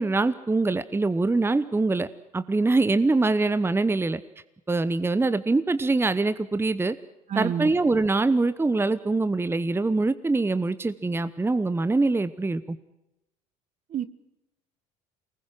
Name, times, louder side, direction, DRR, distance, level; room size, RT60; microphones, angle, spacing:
voice 1, 0.0-2.1 2.3-4.2 4.7-7.0 7.3-12.8, right 3 dB, 15° right, 14 dB, 1.1 m, -24 dB
voice 2, 7.3-7.7 13.9-14.1, right 8 dB, 45° right, 15 dB, 1.6 m, -28 dB
24.0 x 20.0 x 7.7 m, 0.91 s
hypercardioid pair, 75°, 17 cm